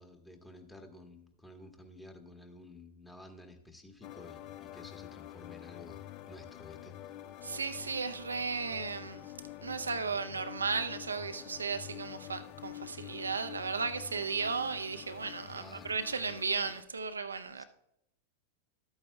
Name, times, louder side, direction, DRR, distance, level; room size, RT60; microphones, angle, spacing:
voice 1, 0.0-7.1 15.6-15.9 17.5-17.6, left 1 dB, 10° left, 1.3 m, -52 dB
sound 1, 4.0-16.8, left 13 dB, 45° left, 0.5 m, -48 dB
voice 2, 7.4-9.3 9.6-17.6, right 5 dB, 85° right, 0.5 m, -35 dB
12.0 x 8.8 x 2.2 m
figure-of-eight pair, 95°, 0 cm